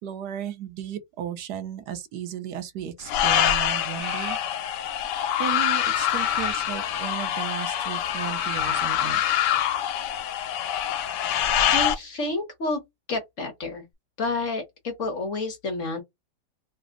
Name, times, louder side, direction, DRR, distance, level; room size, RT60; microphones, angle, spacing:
voice 1, 0.0-4.4 5.4-9.2, right 9 dB, 75° right, 1.2 m, -35 dB
sound 1, 3.1-12.0, left 10 dB, 85° left, 1.2 m, -25 dB
sound 2, 4.0-4.4 6.1-7.2 8.4-9.2, right 4 dB, 50° right, 1.0 m, -40 dB
voice 2, 11.7-12.8 13.1-13.9 14.2-16.0, left 2 dB, 50° left, 1.1 m, -29 dB
3.3 x 2.0 x 3.6 m
omnidirectional pair, 1.9 m